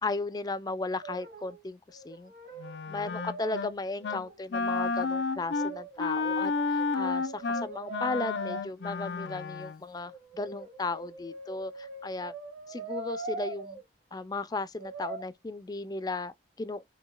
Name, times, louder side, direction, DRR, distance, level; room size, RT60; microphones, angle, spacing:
voice 1, 0.0-2.3 2.9-12.3 12.7-13.8 14.1-16.9, left 3 dB, 20° left, 0.4 m, -35 dB
Brass instrument, 0.9-1.6 1.9-4.4 5.4-8.6 10.0-13.8 14.8-15.2, right 3 dB, 65° right, 2.1 m, -42 dB
Wind instrument woodwind instrument, 2.6-3.7 4.0-4.3 4.5-9.8, left 4 dB, 80° left, 0.5 m, -31 dB
6.2 x 2.7 x 2.2 m
head